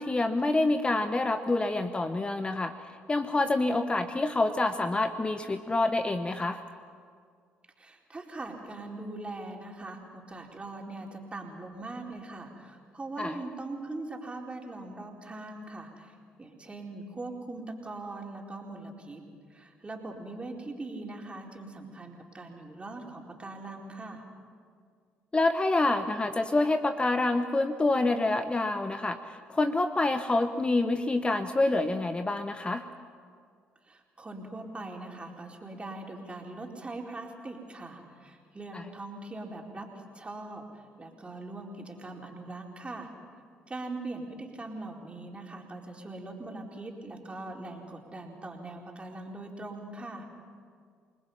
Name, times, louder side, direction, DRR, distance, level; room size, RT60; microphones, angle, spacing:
voice 1, 0.0-2.7 3.1-6.6 13.2-13.4 25.3-32.8 38.7-38.8, left 2 dB, 25° left, 9 dB, 1.0 m, -27 dB
voice 2, 7.8-19.2 19.5-24.2 33.8-43.1 43.7-50.3, right 2 dB, 25° right, 0 dB, 4.4 m, -41 dB
29.0 x 20.5 x 5.7 m, 2.1 s
hypercardioid pair, 60°, 4 cm